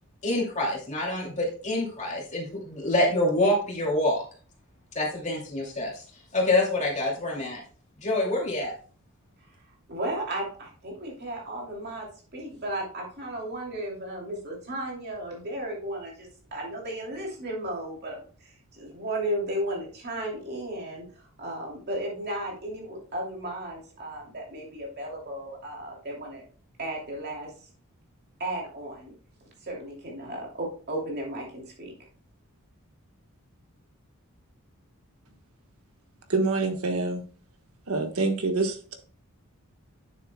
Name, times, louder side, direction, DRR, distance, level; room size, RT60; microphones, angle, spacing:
voice 1, 0.2-4.2 4.9-6.0 6.3-7.6 8.0-8.7, left 1 dB, 35° left, -1 dB, 2.5 m, -26 dB
voice 2, 9.9-12.1 12.3-26.4 26.8-27.5 28.4-29.1 29.6-31.9, right 1 dB, 50° right, -1 dB, 2.7 m, -34 dB
voice 3, 36.3-37.2 37.9-39.0, right 3 dB, 75° right, 6 dB, 1.3 m, -26 dB
9.3 x 7.0 x 2.2 m, 0.41 s
head